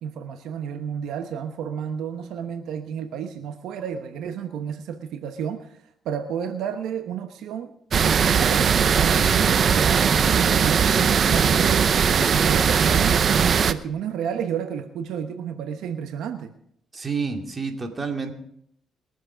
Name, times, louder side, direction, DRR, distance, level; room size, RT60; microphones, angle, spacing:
voice 1, 0.0-5.7 6.0-7.7 8.0-11.9 12.3-13.2 13.7-16.5, right 8 dB, 85° right, 7 dB, 1.0 m, -31 dB
sound 1, 7.9-13.7, right 7 dB, 50° right, 0.7 m, -19 dB
sound 2, 9.3-13.8, right 2 dB, 15° right, 1.2 m, -42 dB
voice 2, 16.9-18.3, right 5 dB, 30° right, 3 dB, 2.3 m, -29 dB
21.5 x 7.6 x 5.1 m, 0.70 s
cardioid pair, 90°, 0 cm